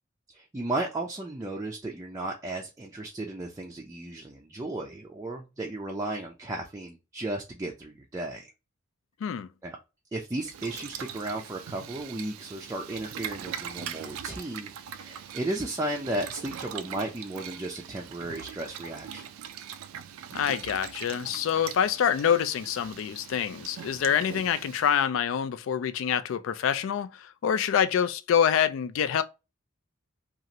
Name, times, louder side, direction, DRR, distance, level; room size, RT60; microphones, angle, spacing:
voice 1, 0.3-8.5 9.6-9.8 10.1-19.2, right 2 dB, 15° right, 0.4 m, -34 dB
Boiling, 10.4-24.9, right 9 dB, 90° right, 0.3 m, -41 dB
voice 2, 20.3-29.2, left 8 dB, 70° left, 0.3 m, -26 dB
2.9 x 2.4 x 2.6 m
head